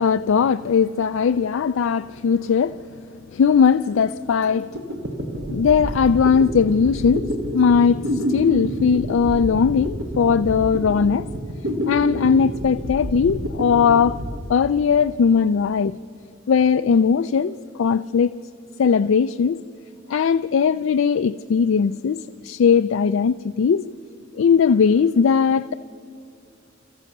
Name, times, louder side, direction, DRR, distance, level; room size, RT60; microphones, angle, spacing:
voice 1, 0.0-2.8 3.3-4.8 5.5-8.0 8.3-11.3 11.9-14.2 14.5-16.0 16.5-18.3 18.8-19.6 20.1-23.9 24.3-25.7, left 6 dB, 70° left, 0.4 m, -19 dB
sound 1, 4.7-15.2, equal, 80° right, 1.6 m, -28 dB
28.0 x 14.5 x 6.6 m
head